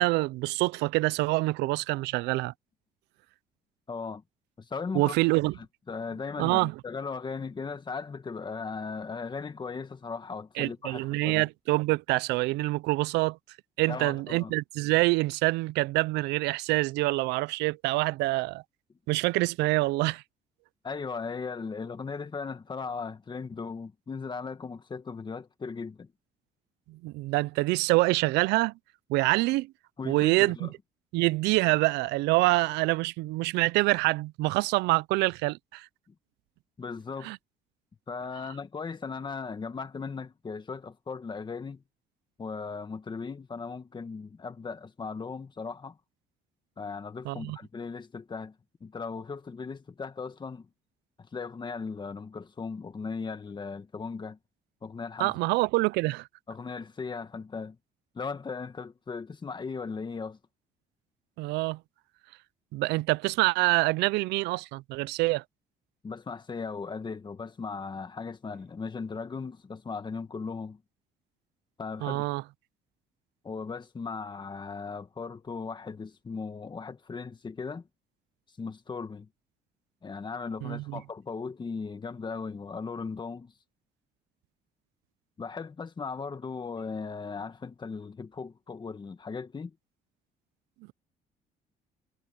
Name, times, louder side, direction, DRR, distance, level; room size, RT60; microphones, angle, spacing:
voice 1, 0.0-2.5 4.9-5.5 6.4-6.7 10.6-13.4 13.8-18.6 19.1-20.2 26.9-28.7 29.1-29.7 30.1-30.7 31.1-35.9 37.2-37.4 47.3-47.6 55.2-56.3 61.4-61.8 62.7-65.4 72.0-72.4 80.6-81.0, right 21 dB, 90° right, 0.4 m, -26 dB
voice 2, 3.9-4.2 4.6-5.1 5.6-11.5 13.9-14.5 20.8-26.1 30.0-30.7 36.8-37.3 38.1-41.8 42.4-46.0 46.8-48.6 48.8-50.7 51.3-54.4 54.8-55.4 56.5-57.8 58.1-60.4 66.0-70.8 71.8-72.3 73.4-77.9 78.6-79.3 80.0-83.5 85.4-89.7, left 5 dB, 25° left, 1.9 m, -37 dB
cardioid pair, 110°, 17 cm